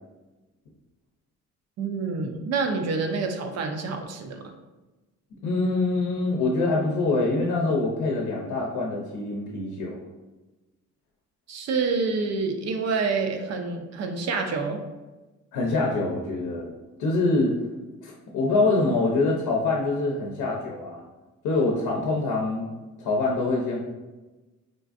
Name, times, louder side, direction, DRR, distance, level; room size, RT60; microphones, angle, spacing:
voice 1, 1.8-4.5 11.5-14.8, right 4 dB, 60° right, 5 dB, 0.5 m, -27 dB
voice 2, 5.4-10.0 15.5-16.7 17.0-17.5 18.0-21.0 21.4-22.7 23.0-23.8, left 3 dB, 80° left, -2 dB, 0.6 m, -25 dB
3.8 x 2.5 x 2.4 m, 1.1 s
cardioid pair, 90°, 30 cm